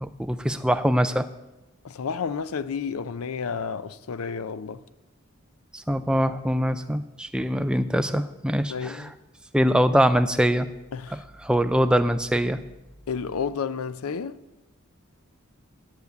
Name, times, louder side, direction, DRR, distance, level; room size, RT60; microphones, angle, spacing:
voice 1, 0.0-1.3 5.7-9.1 9.5-10.7 11.1-12.6, equal, 5° right, 0.4 m, -23 dB
voice 2, 1.8-4.8 8.7-9.1 10.9-11.2 13.1-14.4, left 6 dB, 80° left, 0.5 m, -31 dB
10.5 x 8.1 x 7.1 m
head